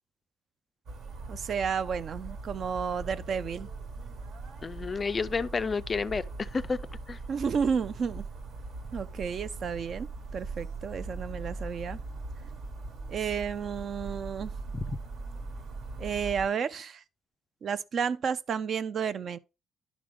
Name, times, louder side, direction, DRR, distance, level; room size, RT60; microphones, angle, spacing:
sound 1, 0.9-16.5, right 3 dB, 65° right, 1.4 m, -40 dB
voice 1, 1.3-3.7 7.3-8.2 8.9-12.0 13.1-14.5 16.0-17.0 17.6-19.4, right 6 dB, 45° right, 0.4 m, -32 dB
voice 2, 4.6-6.8 7.1-7.2 14.7-14.9, left 4 dB, 25° left, 0.3 m, -31 dB
11.0 x 5.0 x 3.4 m
cardioid pair, 145°, 0 cm